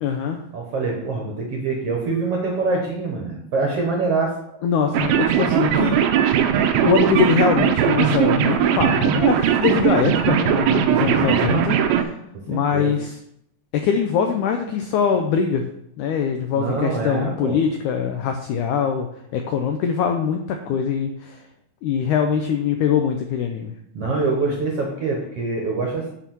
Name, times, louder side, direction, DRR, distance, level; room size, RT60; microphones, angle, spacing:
voice 1, 0.0-0.4 4.6-6.0 6.2-6.4 6.8-12.1 12.5-13.2 13.7-15.6 16.0-19.1 19.3-21.4 21.8-23.7 24.0-24.1, left 7 dB, 85° left, 5 dB, 1.7 m, -22 dB
voice 2, 0.5-4.6 4.9-5.0 10.9-11.5 12.3-12.9 16.5-17.6 23.9-26.1, right 3 dB, 60° right, 0 dB, 1.7 m, -25 dB
sound 1, 4.9-12.0, right 9 dB, 85° right, 2.7 m, -19 dB
8.9 x 4.7 x 6.0 m, 0.76 s
omnidirectional pair, 4.3 m